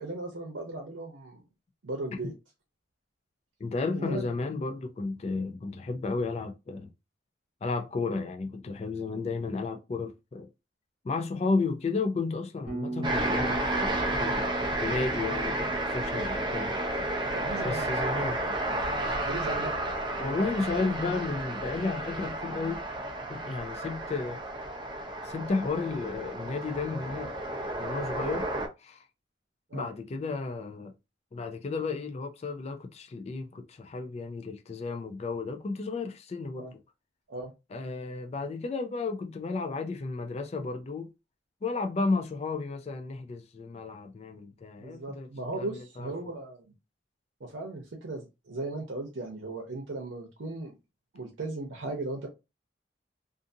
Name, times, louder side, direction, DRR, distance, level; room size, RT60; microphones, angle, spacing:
voice 1, 0.0-1.4 1.8-2.3 3.9-4.3 17.3-17.9 19.2-19.7 29.7-29.9 36.6-36.7 37.3-37.5 44.8-46.6 47.4-50.7 51.1-52.3, right 2 dB, 85° right, 0.7 m, -37 dB
voice 2, 3.6-6.9 7.6-10.5 11.0-16.8 17.6-18.4 20.2-22.8 23.3-24.4 25.2-27.3 27.8-28.5 28.8-29.0 29.7-30.9 31.3-36.7 37.7-41.1 41.6-45.3 45.5-45.7 46.0-46.1, left 3 dB, 35° left, 0.3 m, -33 dB
Bass guitar, 12.7-20.7, right 2 dB, 45° right, 0.9 m, -41 dB
sound 1, 13.0-28.7, right 1 dB, 25° right, 0.5 m, -32 dB
2.5 x 2.5 x 2.6 m
head